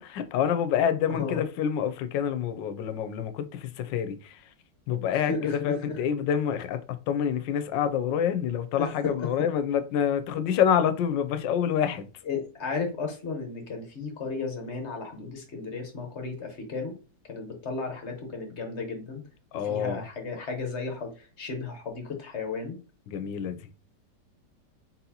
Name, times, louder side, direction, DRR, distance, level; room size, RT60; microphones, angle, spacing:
voice 1, 0.0-4.5 4.9-12.1 19.5-20.0 23.1-23.7, left 8 dB, 90° left, 1.3 m, -27 dB
voice 2, 5.1-6.0 8.8-9.3 12.3-16.9 17.3-19.2 19.5-22.8, left 4 dB, 45° left, 1.1 m, -34 dB
4.1 x 4.1 x 2.8 m
omnidirectional pair, 1.9 m